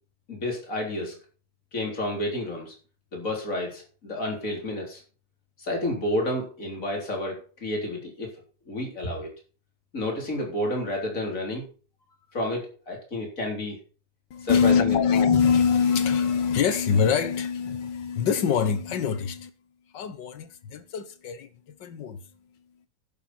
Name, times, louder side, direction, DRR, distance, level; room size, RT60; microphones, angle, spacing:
voice 1, 0.3-1.2 1.7-2.8 3.1-5.0 5.6-8.3 8.7-9.3 9.9-11.7 12.3-13.8 14.4-15.0, left 1 dB, 50° left, 4.1 m, -30 dB
voice 2, 14.3-19.5 19.9-22.3, left 6 dB, 85° left, 1.8 m, -24 dB
11.0 x 9.7 x 4.4 m
omnidirectional pair, 1.9 m